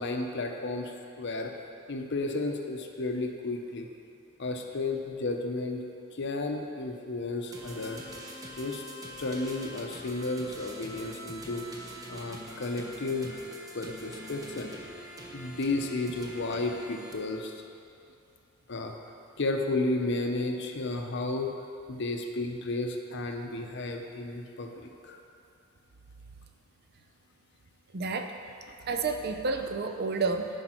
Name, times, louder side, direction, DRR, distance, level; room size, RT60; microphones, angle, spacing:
voice 1, 0.0-1.5 1.9-3.9 4.4-5.8 6.1-8.0 8.6-8.8 9.2-11.7 12.1-13.4 13.7-14.7 15.3-17.6 18.7-18.9 19.4-21.5 21.9-25.2, left 2 dB, 55° left, 4 dB, 0.7 m, -33 dB
sound 1, 7.5-17.1, equal, 15° right, 0.8 m, -44 dB
voice 2, 27.9-28.3 28.9-30.5, right 4 dB, 50° right, 5 dB, 0.5 m, -30 dB
10.0 x 5.2 x 4.4 m, 2.5 s
head